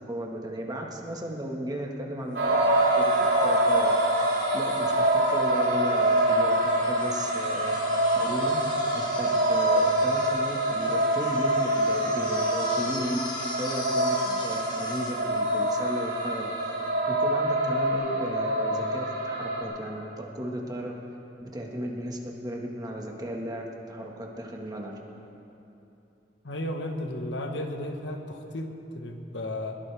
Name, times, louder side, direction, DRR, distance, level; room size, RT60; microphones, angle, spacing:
voice 1, 0.0-8.6 8.9-13.2 13.6-20.9 21.4-25.0, equal, 20° right, 0 dB, 1.6 m, -35 dB
sound 1, 2.3-19.6, right 1 dB, 90° right, 3.8 m, -25 dB
sound 2, 2.5-16.5 17.9-18.0, left 2 dB, 25° left, 1.7 m, -42 dB
voice 2, 26.4-29.8, left 1 dB, 85° left, 4 dB, 1.3 m, -34 dB
21.0 x 17.0 x 3.5 m, 2.9 s
head